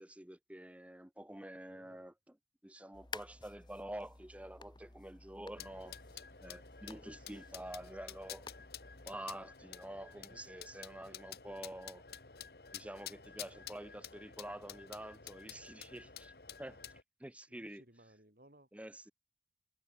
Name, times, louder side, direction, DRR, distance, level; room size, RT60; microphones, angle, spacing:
voice 1, 0.0-2.3 2.6-8.5 9.0-12.0 12.7-16.3 16.6-16.8 17.2-17.8 18.7-19.1, right 1 dB, 10° right, 0.8 m, -48 dB
voice 2, 1.7-2.1 7.0-7.8 10.1-10.4 17.5-18.7, right 1 dB, 55° right, 6.8 m, -64 dB
sound 1, 2.9-9.2, left 4 dB, 25° left, 1.3 m, -53 dB
sound 2, 5.5-17.0, left 8 dB, 60° left, 1.9 m, -51 dB
head